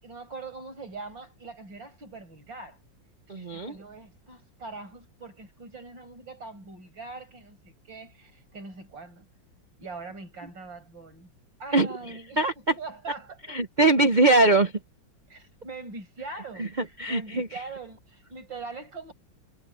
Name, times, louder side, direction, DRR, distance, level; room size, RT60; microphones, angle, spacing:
voice 1, 0.0-2.8 3.3-9.3 9.8-11.3 11.6-12.4 12.8-13.6 15.3-19.1, right 3 dB, 70° right, 7.2 m, -42 dB
voice 2, 3.3-3.8 11.7-11.9 12.4-12.7 13.5-14.7 16.6-16.7 17.0-17.5, right 2 dB, 50° right, 0.5 m, -21 dB
omnidirectional pair, 2.1 m